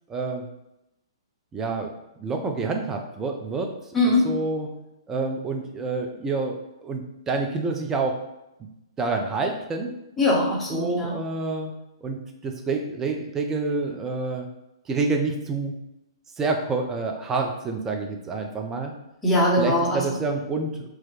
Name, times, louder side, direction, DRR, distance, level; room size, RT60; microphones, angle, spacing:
voice 1, 0.1-0.5 1.5-1.9 2.2-3.7 4.2-4.7 5.1-8.2 9.0-9.9 10.7-11.7 12.0-12.2 12.4-14.5 14.9-15.7 16.4-18.9 19.6-20.9, right 3 dB, 15° right, 3 dB, 0.3 m, -28 dB
voice 2, 3.9-4.2 10.2-11.1 19.2-20.0, left 1 dB, 10° left, -5 dB, 0.7 m, -21 dB
2.3 x 2.1 x 3.1 m, 0.91 s
figure-of-eight pair, 120°, 3 cm